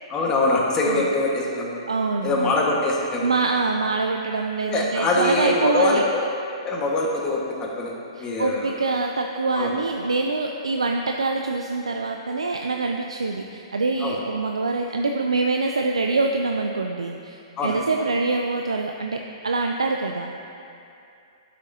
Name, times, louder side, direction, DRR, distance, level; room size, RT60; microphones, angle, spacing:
voice 1, 0.1-1.8 2.2-3.3 4.7-6.2 6.6-7.9 8.2-8.7 9.6-9.7 14.0-14.2 17.6-17.8, left 2 dB, 20° left, -3 dB, 1.4 m, -23 dB
voice 2, 1.9-2.6 3.2-6.1 8.2-20.3, right 3 dB, 90° right, 3 dB, 0.4 m, -25 dB
11.0 x 6.3 x 2.7 m, 2.7 s
hypercardioid pair, 120°, 3 cm